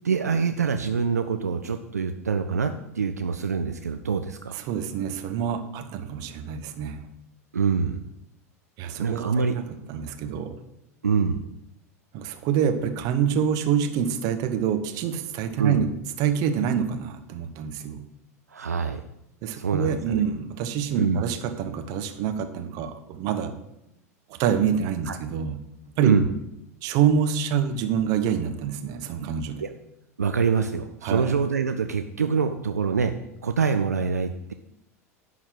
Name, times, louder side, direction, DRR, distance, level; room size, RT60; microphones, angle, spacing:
voice 1, 0.0-4.6 7.5-8.0 9.0-9.5 11.0-11.4 15.6-15.8 18.5-19.0 19.5-20.2 21.0-21.2 25.1-25.2 26.0-26.3 29.6-29.7 30.2-33.1 33.4-34.5, right 5 dB, 80° right, 7 dB, 0.5 m, -25 dB
voice 2, 4.5-7.0 8.8-10.6 12.1-15.9 16.2-18.1 19.4-23.5 24.3-25.6 26.0-26.1 26.8-29.6 31.0-31.3, right 8 dB, 45° right, 8 dB, 1.0 m, -26 dB
11.0 x 4.0 x 7.6 m, 0.85 s
figure-of-eight pair, 85°, 9 cm